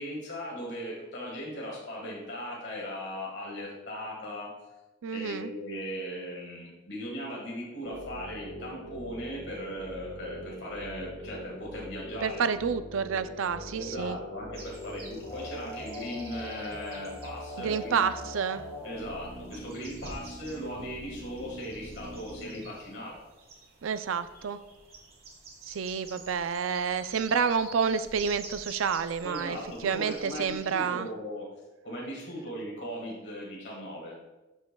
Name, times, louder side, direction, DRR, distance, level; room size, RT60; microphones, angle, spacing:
voice 1, 0.0-4.5 5.1-12.4 13.7-18.1 18.8-23.1 29.2-31.5 31.8-34.2, equal, 55° left, -3 dB, 1.6 m, -38 dB
voice 2, 5.0-5.5 12.2-14.2 17.6-18.6 23.8-24.6 25.6-29.6 29.8-31.1, right 6 dB, 90° right, 12 dB, 0.4 m, -29 dB
sound 1, 7.9-22.6, equal, 40° left, 1.6 m, -42 dB
sound 2, 14.5-30.9, right 3 dB, 50° right, 1.3 m, -49 dB
12.0 x 5.4 x 2.2 m, 1.1 s
head